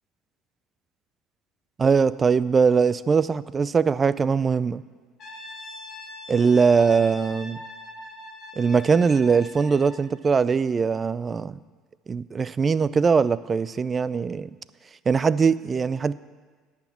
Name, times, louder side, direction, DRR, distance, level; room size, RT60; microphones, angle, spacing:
voice 1, 1.8-4.8 6.3-7.6 8.6-11.6 12.1-14.5 15.1-16.1, right 5 dB, 30° right, 17 dB, 0.4 m, -21 dB
Brass instrument, 5.2-10.0, left 2 dB, 45° left, 2.1 m, -42 dB
10.5 x 6.0 x 8.4 m, 1.5 s
supercardioid pair, 90°, 0 cm